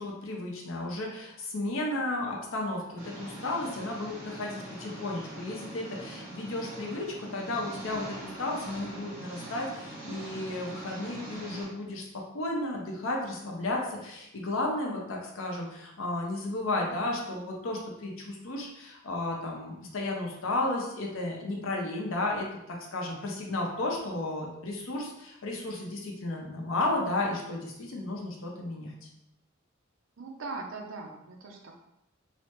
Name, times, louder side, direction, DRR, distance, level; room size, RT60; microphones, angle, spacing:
voice 1, 0.0-12.1 12.3-28.9, left 2 dB, 75° left, 0 dB, 0.6 m, -33 dB
Engine, 3.0-11.6, right 1 dB, 15° right, 1.2 m, -43 dB
voice 2, 30.2-31.8, right 3 dB, 70° right, 2 dB, 0.5 m, -40 dB
3.2 x 2.0 x 2.9 m, 0.85 s
head